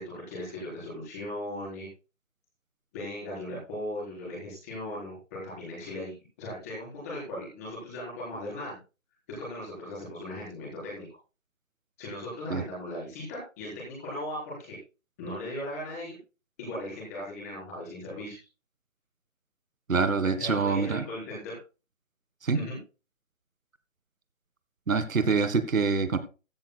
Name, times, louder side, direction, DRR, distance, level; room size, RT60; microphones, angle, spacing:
voice 1, 0.0-1.9 2.9-6.1 6.4-8.8 9.4-11.1 12.0-14.8 15.2-16.2 16.6-18.4 20.4-21.6 22.5-22.8, left 1 dB, 10° left, -5 dB, 4.0 m, -38 dB
voice 2, 19.9-21.0 22.4-22.6 24.9-26.2, right 4 dB, 90° right, 11 dB, 1.7 m, -25 dB
15.0 x 11.0 x 2.2 m, 0.31 s
hypercardioid pair, 180°, 39 cm